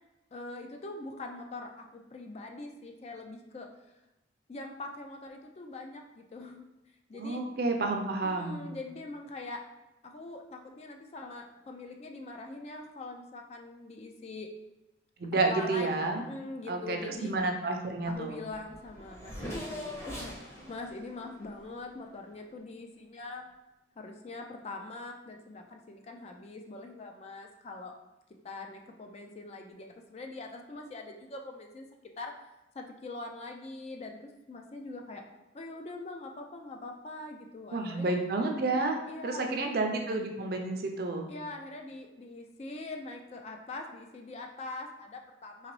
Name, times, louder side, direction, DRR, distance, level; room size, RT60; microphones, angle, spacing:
voice 1, 0.3-3.7 4.5-6.7 7.1-7.4 8.2-9.6 10.0-14.5 15.5-15.9 16.3-17.3 18.0-23.5 24.0-27.9 28.4-31.9 32.2-32.3 32.7-35.2 35.5-38.1 39.1-39.7 41.3-45.7, left 2 dB, 35° left, 3 dB, 0.3 m, -43 dB
voice 2, 7.1-8.6 15.2-16.2 16.7-18.4 37.7-41.3, right 3 dB, 55° right, 3 dB, 0.5 m, -30 dB
Race car auto racing / Accelerating revving vroom, 18.1-18.2 18.4-22.4, left 1 dB, 15° left, 0.8 m, -43 dB
3.9 x 2.9 x 3.0 m, 1.0 s
head